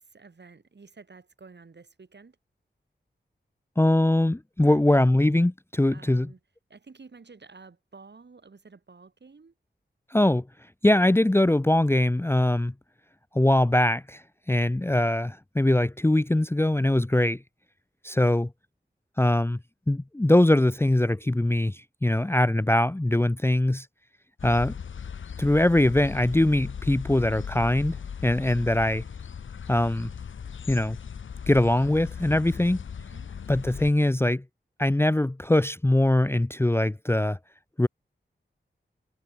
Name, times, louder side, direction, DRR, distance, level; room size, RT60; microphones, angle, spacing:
voice 1, 0.0-2.4 4.6-4.8 5.9-6.4 6.7-9.5 33.0-33.3, right 4 dB, 65° right, 4.9 m, -51 dB
voice 2, 3.8-6.3 10.1-10.4 10.8-12.7 13.3-17.4 18.0-18.5 19.2-19.6 19.9-23.9 24.4-24.8 25.4-28.0 28.2-29.0 29.7-30.1 30.7-31.0 31.5-32.8 33.5-34.4 34.8-37.4 37.8-37.9, left 1 dB, 10° left, 0.6 m, -22 dB
sound 1, 24.4-33.9, left 7 dB, 85° left, 0.9 m, -38 dB
cardioid pair, 50°, 19 cm